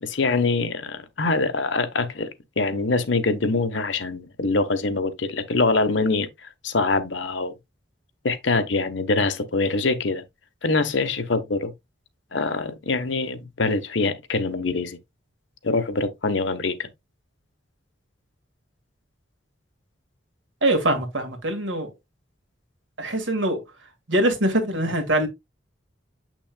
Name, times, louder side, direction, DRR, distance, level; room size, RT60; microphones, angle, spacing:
voice 1, 0.0-2.3 2.6-6.3 6.6-7.5 8.2-10.2 10.6-11.7 12.3-15.0 15.6-16.9, left 3 dB, 70° left, 1.0 m, -24 dB
voice 2, 20.6-21.9 23.0-23.6 24.1-25.3, right 1 dB, 70° right, 1.8 m, -23 dB
7.6 x 6.1 x 2.2 m
head